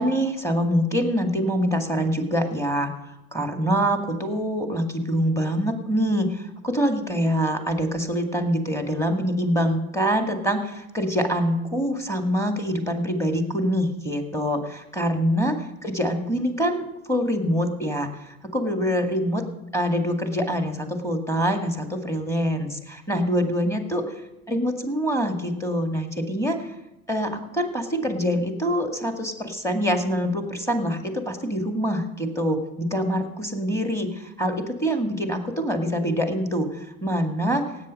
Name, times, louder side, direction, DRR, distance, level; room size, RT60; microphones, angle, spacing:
voice 1, 0.0-2.9 3.3-19.4 19.7-24.1 24.5-26.7 27.1-37.6, equal, 5° left, 5 dB, 2.0 m, -25 dB
17.0 x 8.5 x 5.3 m, 0.92 s
hypercardioid pair, 75°, 41 cm